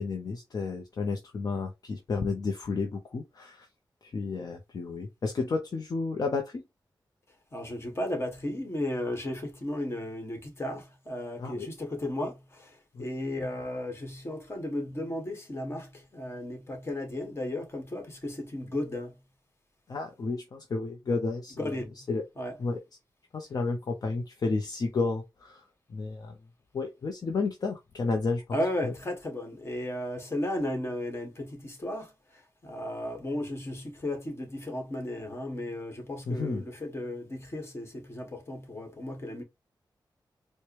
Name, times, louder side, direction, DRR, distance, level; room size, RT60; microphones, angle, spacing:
voice 1, 0.0-3.7 4.0-6.6 11.4-11.7 12.9-13.1 19.9-21.7 22.1-22.2 22.6-22.8 23.3-25.6 25.9-26.4 26.7-28.6 28.8-28.9 36.3-36.6, left 3 dB, 55° left, 0.6 m, -31 dB
voice 2, 7.5-19.2 21.5-22.1 22.3-22.6 28.5-39.4, left 1 dB, 30° left, 1.4 m, -35 dB
4.6 x 2.1 x 2.9 m
wide cardioid pair, 110°, 8 cm